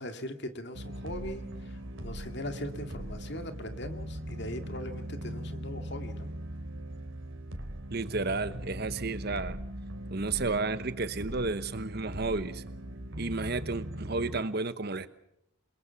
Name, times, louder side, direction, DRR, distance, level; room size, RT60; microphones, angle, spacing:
voice 1, 0.0-6.3, left 1 dB, 55° left, 7 dB, 2.2 m, -40 dB
sound 1, 0.7-14.4, right 1 dB, 65° right, 3.3 m, -40 dB
voice 2, 7.9-9.6 10.1-12.6 13.2-15.1, right 3 dB, 50° right, 12 dB, 1.1 m, -32 dB
28.5 x 22.0 x 5.8 m, 0.79 s
head